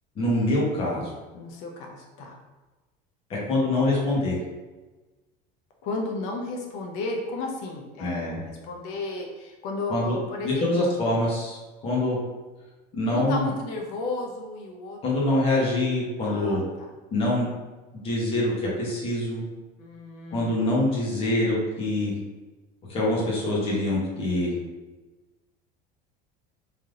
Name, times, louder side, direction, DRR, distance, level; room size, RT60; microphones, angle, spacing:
voice 1, 0.2-1.1 3.3-4.4 8.0-8.4 9.9-10.2 10.4-12.2 12.9-13.5 15.0-16.6 17.1-17.5 18.0-19.4 20.3-22.2 22.9-24.6, left 1 dB, 25° left, -5 dB, 1.0 m, -25 dB
voice 2, 1.3-2.4 5.8-10.9 13.1-15.4 16.2-16.9 19.8-20.7, left 3 dB, 85° left, 1 dB, 0.7 m, -34 dB
3.4 x 2.8 x 3.7 m, 1.2 s
cardioid pair, 175°, 21 cm